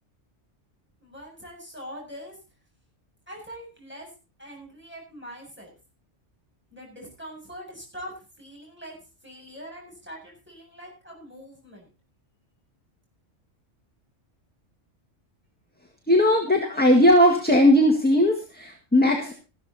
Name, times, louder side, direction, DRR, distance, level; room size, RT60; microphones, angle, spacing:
voice 1, 1.0-2.4 3.3-4.1 4.4-5.8 6.7-9.0 9.2-11.9, equal, 10° right, -1 dB, 7.7 m, -43 dB
voice 2, 16.1-19.3, left 1 dB, 10° left, 2 dB, 1.9 m, -18 dB
14.0 x 13.0 x 4.2 m, 0.33 s
omnidirectional pair, 1.3 m